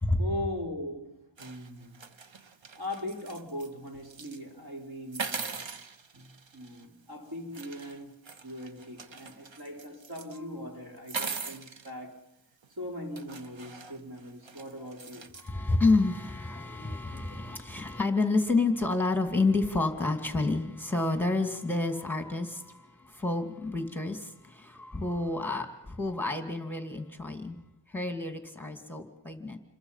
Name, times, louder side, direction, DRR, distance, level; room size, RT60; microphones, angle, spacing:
voice 1, 0.2-2.1 2.8-5.7 6.1-12.3 12.7-15.4, left 1 dB, 55° right, 4.6 m, -40 dB
sound 1, 1.4-3.7 4.0-4.4 5.1-6.8 7.5-10.4 11.0-11.9 12.6-12.7 13.2-15.5, right 5 dB, 90° right, 1.2 m, -41 dB
voice 2, 15.4-27.6 27.9-29.6, left 3 dB, 5° left, 2.4 m, -29 dB
28.0 x 22.0 x 5.7 m
wide cardioid pair, 100°, 44 cm